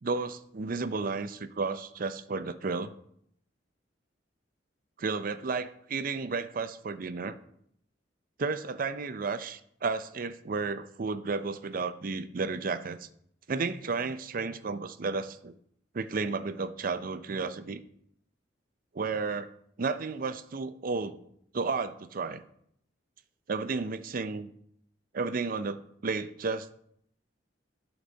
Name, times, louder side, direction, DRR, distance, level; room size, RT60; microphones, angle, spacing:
voice 1, 0.0-2.9 5.0-7.4 8.4-13.1 13.5-15.5 15.9-17.8 18.9-19.5 19.8-21.2 21.5-22.4 23.5-24.5 25.1-26.7, right 4 dB, 50° right, 13 dB, 0.5 m, -32 dB
11.0 x 4.1 x 6.3 m, 0.70 s
head